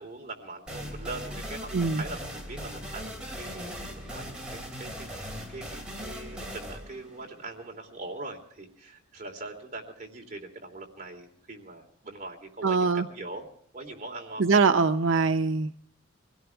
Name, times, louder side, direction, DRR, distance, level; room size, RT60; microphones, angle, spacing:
voice 1, 0.0-13.4 13.7-14.4, right 2 dB, 35° right, 1 dB, 3.2 m, -42 dB
sound 1, 0.7-8.1, equal, 5° right, 3.3 m, -39 dB
voice 2, 12.6-13.1 14.4-15.8, right 4 dB, 75° right, 8 dB, 0.6 m, -23 dB
24.0 x 17.5 x 3.5 m, 0.64 s
head